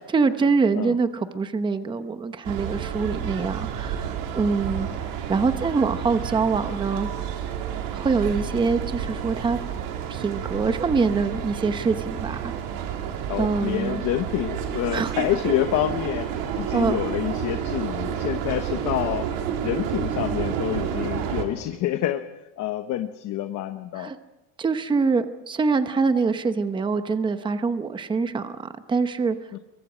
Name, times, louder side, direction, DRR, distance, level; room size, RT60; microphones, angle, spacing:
voice 1, 0.1-4.9 5.3-7.1 7.9-9.6 10.1-12.5 13.4-14.0 14.9-15.1 16.7-17.0 23.9-24.2 24.6-29.3, right 4 dB, 10° right, 10 dB, 0.8 m, -24 dB
sound 1, 2.4-21.4, right 8 dB, 80° right, 3.5 m, -30 dB
voice 2, 13.3-19.3 19.6-22.3 22.6-24.1 29.5-29.6, left 13 dB, 45° left, 9 dB, 1.0 m, -27 dB
28.0 x 23.0 x 5.1 m, 0.98 s
cardioid pair, 165°, 40 cm